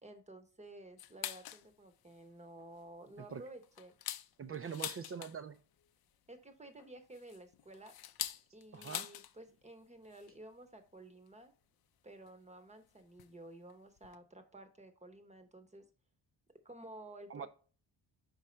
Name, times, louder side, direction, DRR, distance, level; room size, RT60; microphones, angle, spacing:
voice 1, 0.0-3.9 6.3-7.9 8.5-11.5 12.0-15.8 16.6-17.5, right 1 dB, 15° right, 8 dB, 0.8 m, -53 dB
sound 1, 1.0-1.7 2.1-2.2 2.6-2.8 3.3-5.6 6.8-9.3 9.6-9.7 10.0-10.3 11.3-11.4 12.3-12.4 13.2-13.4 13.7-13.8 14.0-14.2, left 12 dB, 55° left, 0.5 m, -44 dB
voice 2, 4.4-5.6 8.7-9.1 17.3-17.5, right 6 dB, 35° right, 12 dB, 0.4 m, -43 dB
5.2 x 4.7 x 4.3 m, 0.39 s
wide cardioid pair, 150°, 44 cm